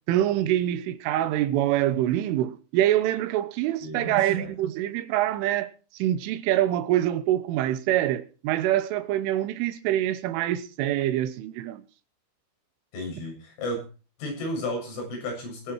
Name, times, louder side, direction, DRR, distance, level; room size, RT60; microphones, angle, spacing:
voice 1, 0.1-11.8, right 13 dB, 80° right, 3.5 m, -25 dB
voice 2, 3.8-4.5 12.9-13.8 14.2-15.7, left 1 dB, 70° left, 9.9 m, -33 dB
20.5 x 10.0 x 4.7 m
omnidirectional pair, 5.7 m